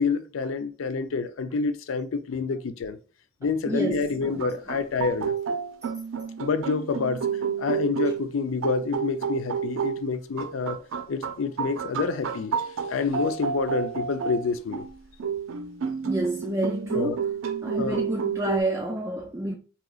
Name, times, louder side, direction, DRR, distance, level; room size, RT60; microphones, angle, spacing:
voice 1, 0.0-3.0 3.4-5.3 6.4-7.3 7.6-10.8 11.1-12.6 12.9-14.9 16.9-17.2 17.8-18.0, left 4 dB, 85° left, 0.4 m, -28 dB
voice 2, 3.7-4.4 16.0-17.3 17.6-19.5, right 1 dB, 15° right, 0.3 m, -29 dB
sound 1, 4.2-18.6, right 6 dB, 90° right, 0.5 m, -30 dB
4.9 x 2.8 x 2.3 m
head